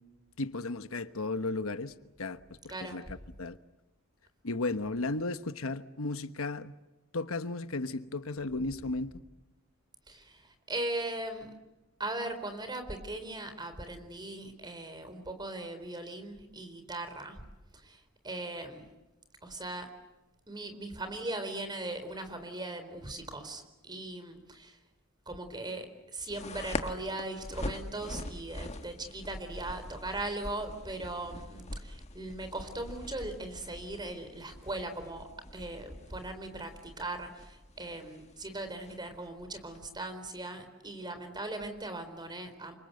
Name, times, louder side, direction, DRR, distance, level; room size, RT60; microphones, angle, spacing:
voice 1, 0.4-3.6 4.4-6.7 7.1-9.1, left 2 dB, 80° left, 1.2 m, -35 dB
voice 2, 2.7-3.0 10.1-11.5 12.0-17.4 17.7-18.9 19.4-19.9 20.5-24.8 25.3-35.3 35.5-42.8, right 2 dB, 20° right, 4.2 m, -39 dB
sound 1, 26.3-39.8, left 1 dB, 30° left, 1.6 m, -43 dB
29.0 x 25.0 x 7.9 m
head